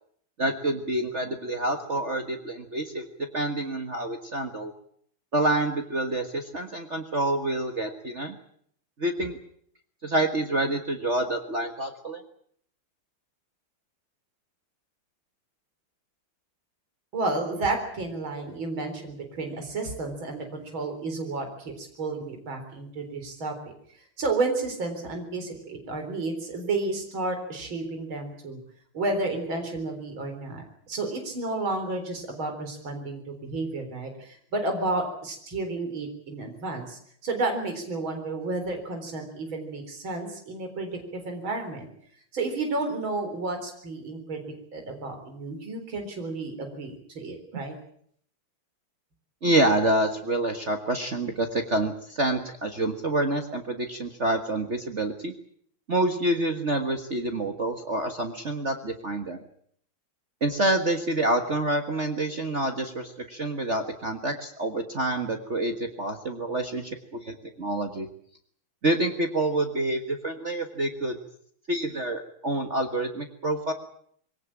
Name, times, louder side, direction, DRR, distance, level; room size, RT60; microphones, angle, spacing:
voice 1, 0.4-3.1 3.3-4.7 5.3-8.3 9.0-9.4 10.0-12.2 47.5-47.6 49.4-55.3 55.9-59.4 60.4-68.1 68.8-71.2 71.7-73.7, right 1 dB, 35° right, 5 dB, 1.7 m, -27 dB
voice 2, 17.1-23.5 24.2-28.6 28.9-41.9 42.3-44.4 44.7-47.7, right 3 dB, 65° right, 5 dB, 4.7 m, -31 dB
22.5 x 17.5 x 8.9 m, 0.65 s
omnidirectional pair, 2.4 m